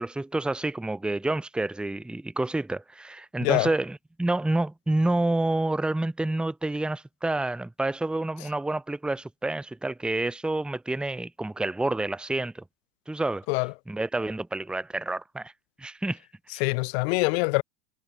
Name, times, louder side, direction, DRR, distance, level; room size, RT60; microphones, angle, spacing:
voice 1, 0.0-12.6 13.1-13.5 13.9-15.5 15.8-16.2 16.5-16.6, right 2 dB, ahead, 1.0 m, -28 dB
voice 2, 3.4-3.7 13.5-13.7 16.6-17.6, left 28 dB, 50° left, 0.5 m, -24 dB
cardioid pair, 175°, 40 cm